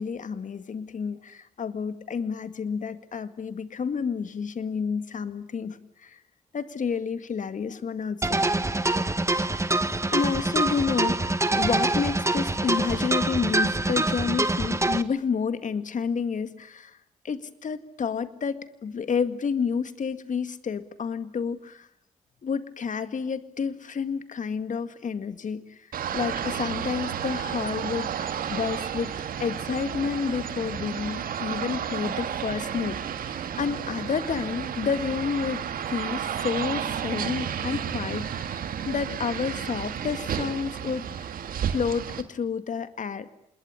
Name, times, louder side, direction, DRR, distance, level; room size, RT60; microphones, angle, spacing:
voice 1, 0.0-6.2 6.5-8.4 9.6-17.0 17.2-21.9 22.4-25.9 26.1-29.1 29.4-41.3 41.7-43.3, left 6 dB, 55° left, 12 dB, 1.9 m, -30 dB
sound 1, 8.2-15.0, right 2 dB, 20° right, 1.6 m, -25 dB
sound 2, 25.9-42.2, right 8 dB, 70° right, 1.8 m, -32 dB
27.0 x 21.0 x 9.8 m, 0.79 s
supercardioid pair, 50°, 15 cm